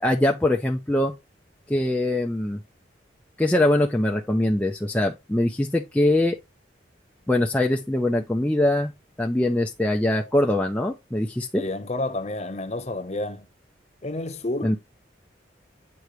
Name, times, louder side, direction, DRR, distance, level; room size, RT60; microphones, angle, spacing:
voice 1, 0.0-1.1 1.7-2.6 3.4-6.4 7.3-8.9 9.2-11.6 14.6-14.8, left 1 dB, 5° left, 0.5 m, -22 dB
voice 2, 11.5-13.5 14.0-14.8, left 2 dB, 35° left, 0.8 m, -30 dB
8.1 x 4.6 x 3.1 m
head